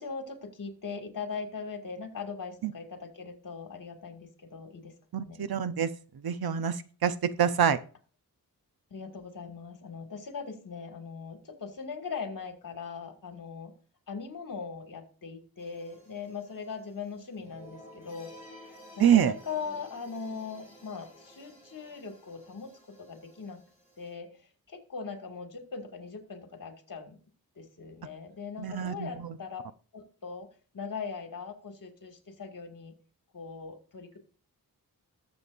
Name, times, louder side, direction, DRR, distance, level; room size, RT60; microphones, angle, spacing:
voice 1, 0.0-4.9 5.2-5.5 8.9-13.7 14.1-18.3 19.0-23.6 24.0-24.3 24.7-27.2 27.6-29.6 29.9-30.5 30.7-32.9 33.3-34.2, left 5 dB, 60° left, 5 dB, 2.2 m, -40 dB
voice 2, 5.1-5.9 6.2-6.8 7.0-7.8 19.0-19.3 28.6-29.3, right 9 dB, 75° right, 13 dB, 0.8 m, -25 dB
sound 1, 15.6-24.1, equal, 5° right, 6.8 m, -53 dB
20.5 x 7.3 x 2.6 m, 0.39 s
wide cardioid pair, 155°, 37 cm